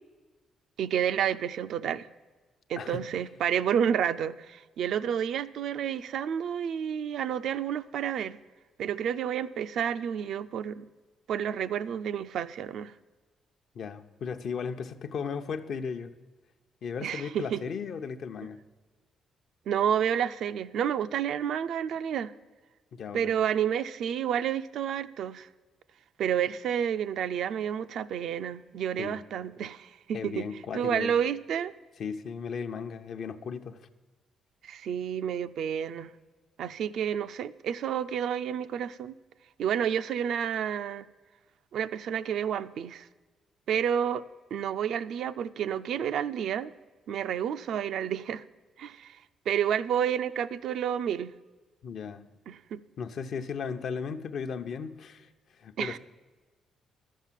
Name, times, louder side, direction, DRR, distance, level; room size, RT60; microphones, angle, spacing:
voice 1, 0.8-2.1 2.7-8.4 8.8-10.9 11.3-12.9 17.0-17.6 19.7-22.3 23.1-25.5 26.2-30.4 30.7-31.7 34.6-36.1 36.6-39.2 39.6-41.1 41.7-43.1 43.7-44.2 44.5-46.7 47.1-48.4 48.8-49.2 49.5-51.3 52.5-52.8 55.8-56.0, right 9 dB, 75° right, 0.4 m, -30 dB
voice 2, 2.8-3.1 13.7-16.1 16.8-18.6 22.9-23.3 29.0-29.2 30.1-31.1 32.0-33.9 51.8-52.3 53.0-55.3 55.6-56.0, left 6 dB, 60° left, 0.7 m, -36 dB
11.5 x 7.3 x 7.4 m
cardioid pair, 90°, 0 cm